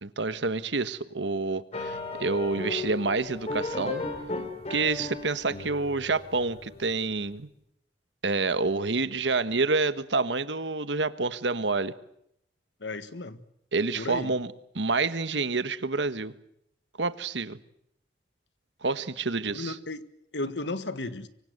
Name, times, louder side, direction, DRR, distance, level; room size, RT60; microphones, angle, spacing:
voice 1, 0.0-4.0 4.7-7.5 8.2-11.9 13.7-16.3 17.0-17.6 18.8-19.8, right 3 dB, 80° right, 13 dB, 1.4 m, -28 dB
sound 1, 1.7-7.0, left 2 dB, 35° left, 4.3 m, -35 dB
voice 2, 12.8-13.4 13.9-14.3 19.5-20.0 20.3-21.3, left 2 dB, 75° left, 12 dB, 1.7 m, -34 dB
25.0 x 24.5 x 8.0 m, 0.76 s
head